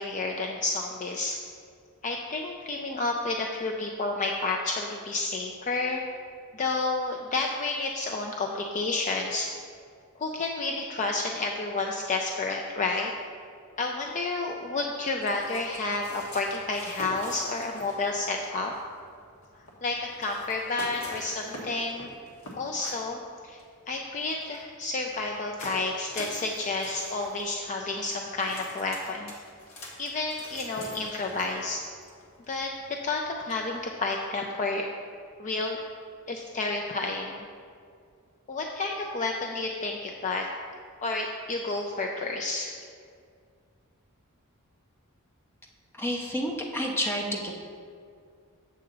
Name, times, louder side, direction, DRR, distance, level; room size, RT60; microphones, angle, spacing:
voice 1, 0.0-1.4 2.0-6.0 6.5-9.5 10.2-13.1 13.8-18.7 19.8-22.1 22.6-23.6 23.9-29.3 30.0-31.8 32.5-34.9 35.4-35.8 36.3-37.4 38.5-40.5 41.0-42.7, left 3 dB, 35° left, 1 dB, 0.4 m, -30 dB
sound 1, 15.2-33.9, left 1 dB, 65° left, 1.4 m, -46 dB
voice 2, 46.0-47.5, equal, 10° left, -1 dB, 0.8 m, -29 dB
7.5 x 6.8 x 3.9 m, 2.3 s
head